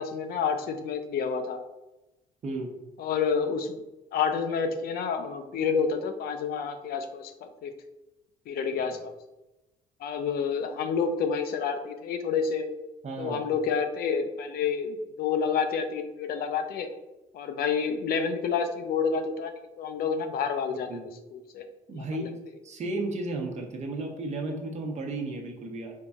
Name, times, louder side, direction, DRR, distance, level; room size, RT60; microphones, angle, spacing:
voice 1, 0.0-1.6 3.0-3.8 4.1-7.7 8.5-9.1 10.0-12.7 13.2-16.9 17.3-19.5 19.8-20.9 21.3-21.6 21.9-22.3, left 6 dB, 65° left, 7 dB, 0.5 m, -29 dB
voice 2, 13.0-13.5 20.9-21.0 21.9-22.3 22.6-25.9, right 2 dB, 40° right, 2 dB, 0.9 m, -33 dB
4.5 x 4.0 x 2.4 m, 1.0 s
cardioid pair, 110°, 17 cm